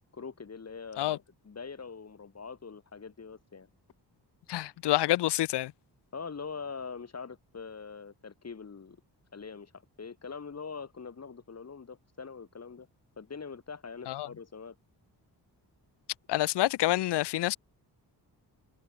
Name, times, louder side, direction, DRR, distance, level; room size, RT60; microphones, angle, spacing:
voice 1, 0.1-3.7 6.1-9.0 9.3-9.7 10.0-12.9 13.2-14.8, left 5 dB, 40° left, 2.6 m, -43 dB
voice 2, 4.5-5.7 14.1-14.3 16.3-17.6, left 15 dB, 85° left, 0.5 m, -27 dB
wide cardioid pair, 120°, 41 cm